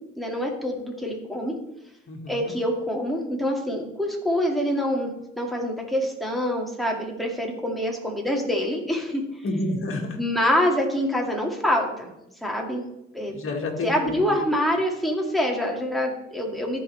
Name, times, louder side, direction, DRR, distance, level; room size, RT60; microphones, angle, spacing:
voice 1, 0.2-1.5 2.3-5.1 5.4-9.2 10.2-12.1 12.4-12.8 13.1-13.4 13.8-16.8, equal, ahead, -1 dB, 2.1 m, -25 dB
voice 2, 2.1-2.5 9.4-10.2 13.3-14.4, left 2 dB, 45° left, 2 dB, 1.9 m, -29 dB
14.0 x 5.5 x 3.3 m, 0.85 s
cardioid pair, 90°, 30 cm